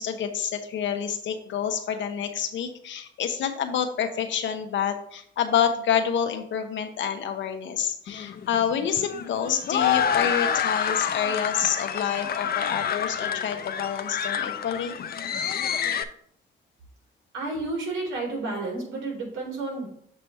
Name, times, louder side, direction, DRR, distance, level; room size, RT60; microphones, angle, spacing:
voice 1, 0.0-14.9, left 8 dB, 70° left, 7 dB, 1.0 m, -28 dB
sound 1, 8.1-16.0, left 8 dB, 50° left, 0.6 m, -28 dB
voice 2, 17.3-19.9, right 3 dB, 80° right, -2 dB, 3.0 m, -31 dB
7.4 x 3.2 x 5.5 m, 0.67 s
cardioid pair, 90°, 20 cm